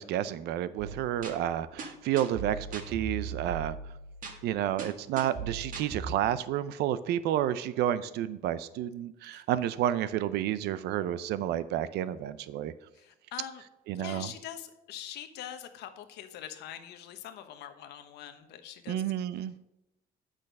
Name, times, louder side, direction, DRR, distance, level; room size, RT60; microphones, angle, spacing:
voice 1, 0.0-3.8 4.4-12.7 13.9-14.3 18.9-19.5, right 11 dB, 75° right, 15 dB, 0.5 m, -30 dB
sound 1, 0.8-6.1, right 5 dB, 55° right, 1.8 m, -40 dB
voice 2, 12.9-13.6 14.0-19.0, left 10 dB, 80° left, 8 dB, 1.0 m, -43 dB
8.7 x 6.4 x 5.2 m, 0.90 s
cardioid pair, 110°, 17 cm